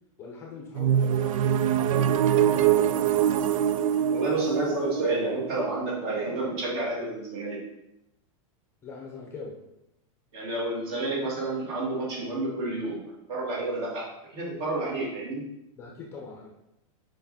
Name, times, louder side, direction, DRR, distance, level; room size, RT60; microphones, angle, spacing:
voice 1, 0.2-3.3 8.8-9.6 15.0-15.2 15.8-16.5, left 4 dB, 15° left, -1 dB, 0.7 m, -42 dB
sound 1, 0.7-6.5, right 10 dB, 70° right, 0.4 m, -24 dB
voice 2, 4.1-7.6 10.3-13.0 13.3-14.1 14.3-15.5, right 2 dB, 45° right, -3 dB, 2.7 m, -30 dB
6.4 x 5.2 x 4.3 m, 0.88 s
supercardioid pair, 175°, 18 cm